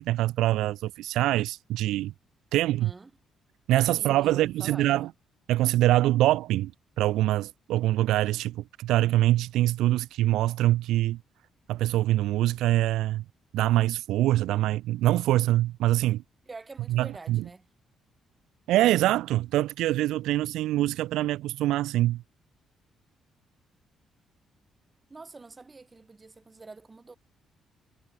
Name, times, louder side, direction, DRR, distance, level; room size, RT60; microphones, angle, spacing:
voice 1, 0.0-2.1 2.5-2.9 3.7-5.1 5.5-6.7 7.0-11.2 11.7-13.2 13.5-16.2 16.9-17.4 18.7-22.2, right 15 dB, 90° right, 0.5 m, -24 dB
voice 2, 2.6-3.1 4.0-5.1 16.5-17.7 25.1-27.2, right 3 dB, 25° right, 5.8 m, -46 dB
cardioid pair, 90°, 0 cm